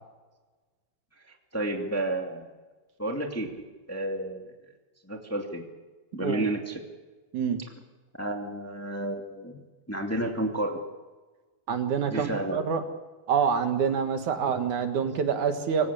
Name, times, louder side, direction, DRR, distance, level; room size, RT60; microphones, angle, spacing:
voice 1, 1.5-2.5 3.0-3.5 3.9-4.4 5.0-5.6 6.1-6.8 8.1-9.6 9.9-10.8 12.1-12.6, right 1 dB, 5° left, 2 dB, 1.4 m, -31 dB
voice 2, 11.7-12.8 13.3-15.9, right 7 dB, 55° right, 6 dB, 2.6 m, -26 dB
25.5 x 16.0 x 8.5 m, 1.3 s
omnidirectional pair, 4.6 m